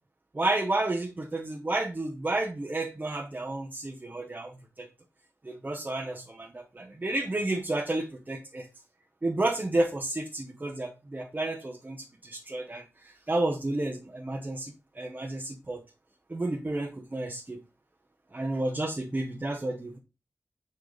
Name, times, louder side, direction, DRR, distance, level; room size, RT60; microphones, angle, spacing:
voice 1, 0.3-4.9 5.4-8.7 9.2-15.8 16.3-17.6 18.3-20.0, right 2 dB, 30° right, 1.0 m, -31 dB
5.4 x 5.1 x 4.0 m
cardioid pair, 60°, 6 cm